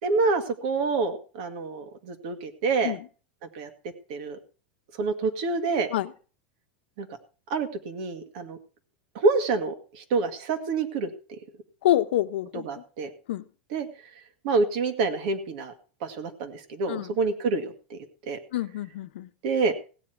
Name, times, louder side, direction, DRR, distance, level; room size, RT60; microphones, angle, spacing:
voice 1, 0.0-3.0 3.5-3.7 4.1-4.4 5.0-5.9 7.0-7.1 7.5-8.6 9.2-11.4 12.5-13.1 13.7-13.9 14.4-15.7 16.0-18.0 18.3-18.4 19.4-19.7, right 4 dB, 50° right, 1.9 m, -27 dB
voice 2, 11.8-12.7 13.3-13.4 16.9-17.1 18.5-19.3, left 13 dB, 75° left, 1.0 m, -26 dB
16.5 x 9.7 x 4.6 m
supercardioid pair, 175°, 6 cm